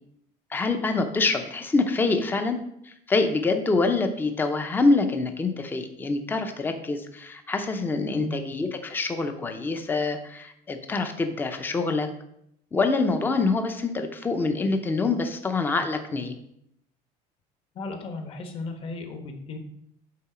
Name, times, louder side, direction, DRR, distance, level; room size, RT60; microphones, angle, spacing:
voice 1, 0.5-2.6 2.8-12.1 12.7-16.3, left 3 dB, 15° left, 6 dB, 0.6 m, -25 dB
voice 2, 17.7-19.6, left 3 dB, 35° left, 5 dB, 1.1 m, -35 dB
8.5 x 3.9 x 4.9 m, 0.75 s
cardioid pair, 165°, 16 cm